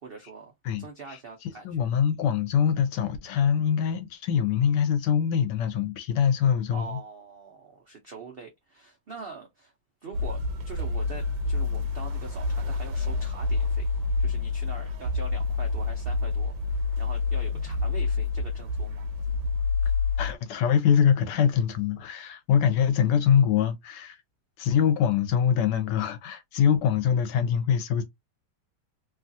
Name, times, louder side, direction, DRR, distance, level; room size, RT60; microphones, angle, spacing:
voice 1, 0.0-0.5 0.8-1.9 6.7-9.7 10.0-13.9 14.2-19.1, right 5 dB, 60° right, 0.6 m, -43 dB
voice 2, 0.6-7.0 20.2-24.2 24.6-28.0, left 8 dB, 85° left, 1.3 m, -24 dB
sound 1, 10.1-20.4, left 4 dB, 90° right, 1.3 m, -28 dB
3.0 x 2.4 x 2.6 m
omnidirectional pair, 1.8 m